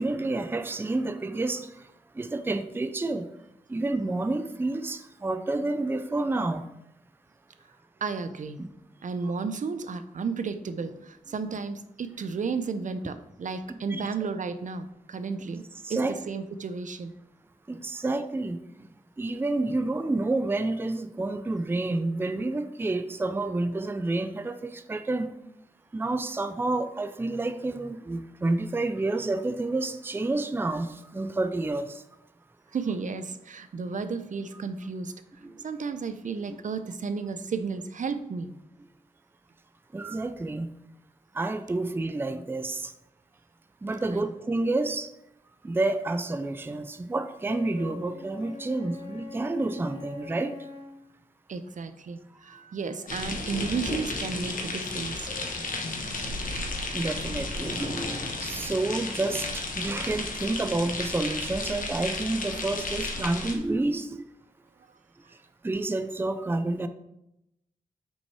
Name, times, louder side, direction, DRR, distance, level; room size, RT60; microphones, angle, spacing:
voice 1, 0.0-1.9 2.1-3.3 3.7-6.6 8.6-8.7 13.9-14.1 15.8-16.1 17.7-18.9 19.2-25.3 25.9-32.0 36.5-36.6 39.9-40.7 41.3-42.9 43.8-45.1 45.6-50.6 56.9-64.3 65.6-66.9, right 2 dB, 15° right, 10 dB, 0.4 m, -29 dB
voice 2, 8.0-8.6 9.0-15.6 15.9-17.1 32.7-38.5 44.1-44.2 51.5-55.3, right 5 dB, 60° right, 11 dB, 0.6 m, -33 dB
Wind instrument woodwind instrument, 47.4-51.0, left 4 dB, 50° left, 1.2 m, -43 dB
sound 1, 53.1-63.6, left 3 dB, 70° left, 1.2 m, -33 dB
6.3 x 5.4 x 4.7 m, 0.84 s
wide cardioid pair, 100°, 14 cm